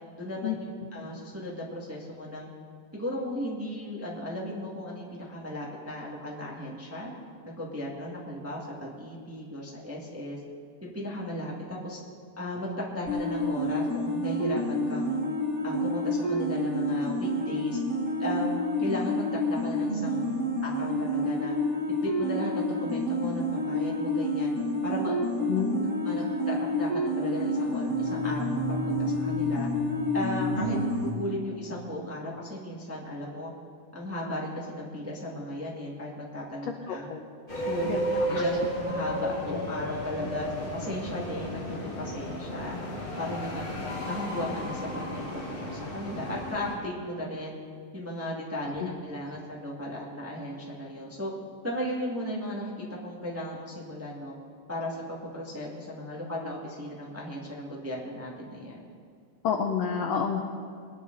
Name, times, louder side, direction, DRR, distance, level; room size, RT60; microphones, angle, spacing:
voice 1, 0.2-2.5 2.9-7.1 7.4-10.4 10.8-12.0 12.4-15.2 15.6-17.8 18.2-21.5 22.0-24.5 24.8-25.5 26.0-29.7 30.1-33.5 33.9-37.1 37.5-42.8 43.2-43.7 44.1-47.6 47.9-51.3 51.6-54.3 54.7-58.9, left 1 dB, 5° right, -4 dB, 1.1 m, -36 dB
sound 1, 13.1-31.1, left 1 dB, 55° right, 0.8 m, -28 dB
voice 2, 25.5-25.9 36.9-37.2 37.8-38.0 38.3-38.4 59.4-60.4, left 7 dB, 75° left, 3 dB, 1.5 m, -28 dB
sound 2, 37.5-46.7, equal, 25° left, 1.2 m, -33 dB
22.5 x 10.5 x 4.0 m, 2.2 s
omnidirectional pair, 4.0 m